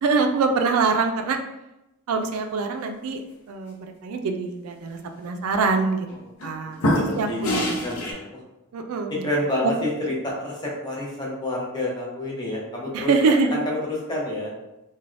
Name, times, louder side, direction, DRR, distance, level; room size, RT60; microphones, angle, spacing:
voice 1, 0.0-1.4 2.1-3.2 3.5-6.1 6.4-6.8 7.2-8.1 8.7-9.3 12.9-13.6, right 4 dB, 80° right, 5 dB, 0.3 m, -24 dB
sound 1, 5.2-5.5 6.1-6.5 6.8-8.1, left 1 dB, 80° left, 0.6 m, -25 dB
voice 2, 6.6-8.4 9.1-13.1 13.5-14.5, left 1 dB, 20° left, -4 dB, 0.7 m, -29 dB
3.2 x 2.2 x 2.5 m, 0.93 s
head